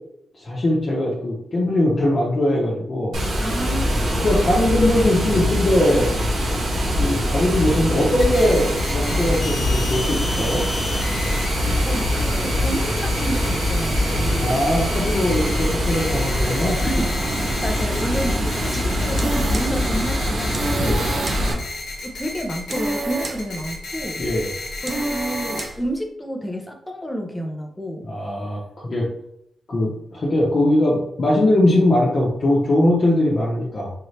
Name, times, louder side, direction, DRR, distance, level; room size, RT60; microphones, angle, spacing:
voice 1, 0.3-3.2 4.2-6.1 7.0-8.6 8.9-10.6 14.4-16.8 20.8-21.1 24.2-24.5 28.0-29.1 29.7-33.9, left 1 dB, 45° left, -5 dB, 1.0 m, -20 dB
Water, 3.1-21.5, equal, 85° right, 1.2 m, -23 dB
voice 2, 3.4-4.2 11.4-14.5 16.8-17.2 17.5-21.1 21.4-21.7 22.0-24.2 24.8-28.1, equal, 5° left, 2 dB, 0.8 m, -30 dB
sound 1, 8.2-25.7, left 2 dB, 75° left, 1.1 m, -33 dB
sound 2, 18.9-25.9, right 2 dB, 40° right, 0.5 m, -31 dB
4.4 x 2.7 x 3.3 m, 0.75 s
cardioid pair, 85°, 0 cm